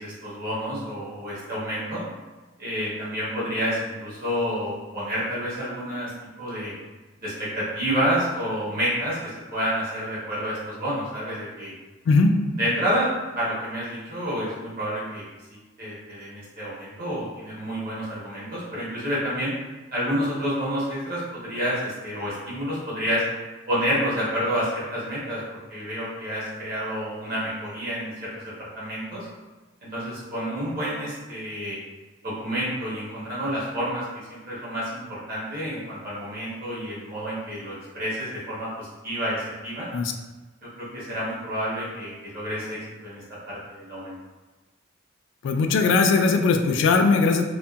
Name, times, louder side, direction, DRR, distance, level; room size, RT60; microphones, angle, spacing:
voice 1, 0.0-2.0 2.6-6.1 6.4-6.7 7.2-11.7 12.5-13.1 13.4-15.2 15.8-19.5 19.9-23.2 23.7-28.3 28.6-29.3 29.8-31.8 32.2-39.9 40.8-44.2, equal, 50° right, -7 dB, 1.1 m, -29 dB
voice 2, 12.1-12.4 39.9-40.1 45.4-47.5, left 4 dB, 80° left, 5 dB, 0.3 m, -19 dB
2.7 x 2.7 x 2.3 m, 1.2 s
head